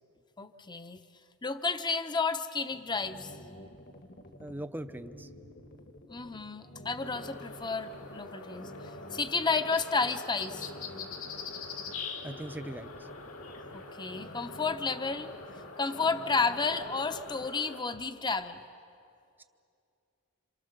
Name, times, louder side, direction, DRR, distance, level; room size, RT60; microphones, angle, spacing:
voice 1, 0.4-1.0 1.4-3.3 6.1-10.7 13.7-15.3 15.8-18.6, left 4 dB, 20° left, 10 dB, 0.8 m, -32 dB
sound 1, 2.7-17.4, left 1 dB, 45° left, 1.4 m, -49 dB
voice 2, 4.4-5.3 12.2-13.1, right 1 dB, 10° right, 10 dB, 0.7 m, -40 dB
sound 2, 7.0-17.8, left 4 dB, 70° left, 2.3 m, -44 dB
27.0 x 27.0 x 6.7 m, 2.6 s
head